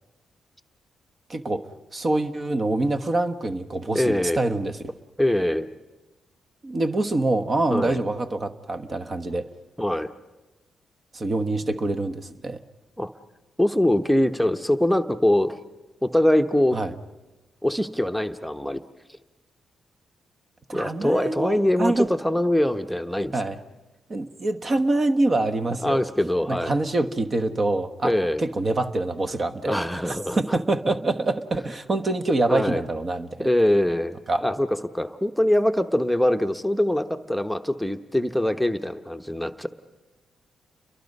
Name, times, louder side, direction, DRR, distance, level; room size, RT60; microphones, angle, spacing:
voice 1, 1.3-1.6 1.9-5.0 6.6-9.5 11.1-12.6 16.7-16.9 20.7-22.1 23.3-23.6 24.1-26.0 26.5-28.1 28.4-33.5 34.3-34.4, right 2 dB, 40° right, 7 dB, 1.2 m, -25 dB
voice 2, 3.9-4.4 5.2-5.7 7.7-8.0 9.8-10.1 13.0-13.1 13.6-15.6 16.0-16.8 17.6-18.8 20.7-23.3 25.8-26.7 28.0-28.4 29.6-30.6 32.5-32.8 33.4-34.2 34.4-39.7, left 1 dB, ahead, 7 dB, 1.0 m, -23 dB
29.5 x 22.5 x 5.4 m, 1.1 s
cardioid pair, 65°, 0 cm